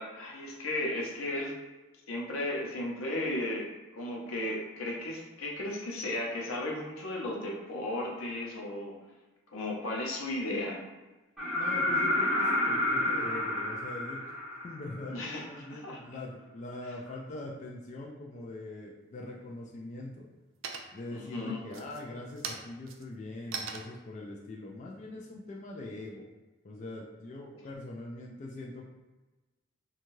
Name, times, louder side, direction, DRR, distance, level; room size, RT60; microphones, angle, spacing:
voice 1, 0.0-1.5 2.1-3.7 3.9-8.9 9.5-10.8 15.1-16.2 21.1-21.6, left 1 dB, 85° left, -2 dB, 0.7 m, -35 dB
sound 1, 11.4-15.2 17.1-17.2, left 1 dB, ahead, 0.7 m, -29 dB
voice 2, 11.5-14.2 14.6-20.3 20.9-26.2 26.6-28.8, left 2 dB, 35° left, -2 dB, 0.3 m, -42 dB
sound 2, 19.0-19.6 20.0-20.4 20.6-21.2 21.6-26.1, right 5 dB, 70° right, 0.3 m, -42 dB
2.6 x 2.3 x 3.0 m, 1.1 s
head